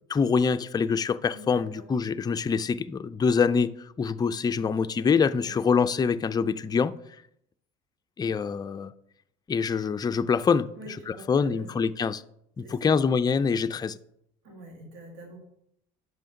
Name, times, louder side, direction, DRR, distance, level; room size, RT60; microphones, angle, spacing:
voice 1, 0.1-6.9 8.2-8.9 9.5-10.7 11.1-12.2 12.6-14.0, left 5 dB, 20° left, 0.4 m, -25 dB
voice 2, 1.3-1.8 5.4-5.7 10.8-11.8 12.6-12.9 14.4-15.4, right 1 dB, 80° right, 1.8 m, -46 dB
5.8 x 5.5 x 5.3 m
hypercardioid pair, 70°, 21 cm